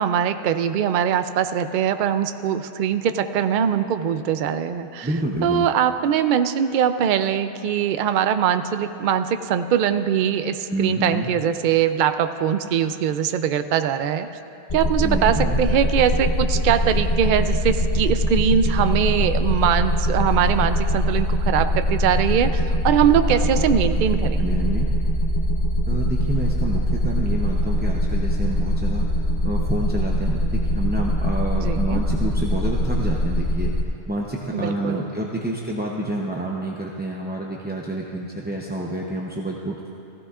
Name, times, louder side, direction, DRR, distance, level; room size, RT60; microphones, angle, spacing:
voice 1, 0.0-5.1 5.4-14.3 14.7-24.4 31.5-32.0 34.5-35.1, right 8 dB, 60° right, 10 dB, 0.5 m, -22 dB
voice 2, 5.0-5.7 10.7-11.3 15.0-15.6 24.4-24.9 25.9-29.1 29.4-33.7 34.1-39.8, right 1 dB, 10° right, -3 dB, 0.5 m, -28 dB
sound 1, 14.7-33.8, equal, 45° left, 0.7 m, -22 dB
16.0 x 15.5 x 2.4 m, 2.8 s
omnidirectional pair, 1.2 m